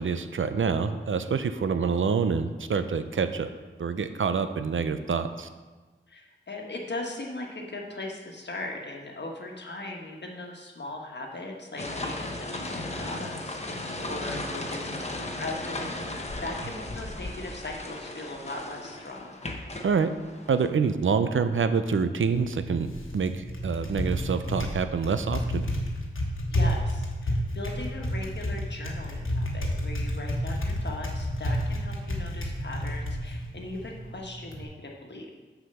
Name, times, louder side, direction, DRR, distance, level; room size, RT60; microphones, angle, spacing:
voice 1, 0.0-3.5 3.8-5.5 19.8-20.1 20.5-22.9 23.1-25.6, right 5 dB, 75° right, 10 dB, 0.5 m, -26 dB
voice 2, 6.1-19.3 26.5-35.3, left 2 dB, 60° left, 0 dB, 1.4 m, -39 dB
sound 1, 11.8-20.7, left 2 dB, 30° left, 0.9 m, -36 dB
Typing, 22.2-34.6, equal, 85° left, 1.2 m, -31 dB
6.3 x 4.9 x 6.9 m, 1.3 s
wide cardioid pair, 60°, 21 cm